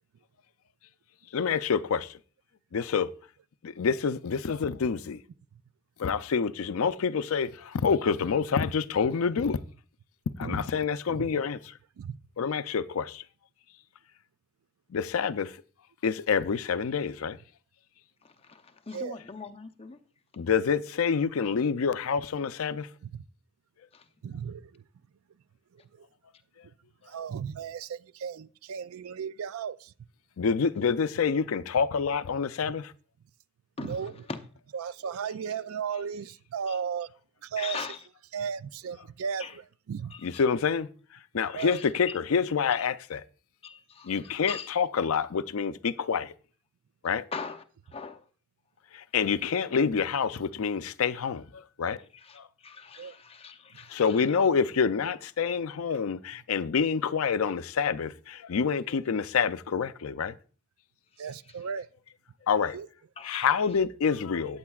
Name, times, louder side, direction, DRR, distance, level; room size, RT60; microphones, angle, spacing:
voice 1, 1.3-2.2 2.7-3.1 3.6-5.2 6.0-9.6 10.4-11.8 12.4-13.2 14.9-15.6 16.0-17.4 20.4-22.9 30.4-32.9 40.2-40.9 41.3-43.2 44.0-46.3 47.0-47.3 48.9-52.0 52.4-52.5 53.9-60.4 62.5-62.8 63.2-64.6, left 6 dB, 90° left, 0.5 m, -27 dB
voice 2, 11.1-11.4 12.0-12.2 18.9-19.2 23.0-23.2 24.2-24.8 25.7-26.1 27.1-29.9 33.8-34.1 34.7-37.1 37.4-37.9 38.3-40.1 41.5-41.8 53.0-53.1 61.2-61.9 62.7-62.9, right 7 dB, 90° right, 0.4 m, -35 dB
voice 3, 18.2-20.0 20.4-20.5 21.5-21.6 23.9-24.1 33.8-34.4 36.7-36.8 37.6-38.0 39.4-39.6 40.1-40.4 41.6-42.2 42.7-42.9 43.6-44.7 47.3-48.3 52.1-54.2 61.5-61.6 63.2-63.8, left 5 dB, 30° left, 0.6 m, -41 dB
14.0 x 8.7 x 2.4 m
head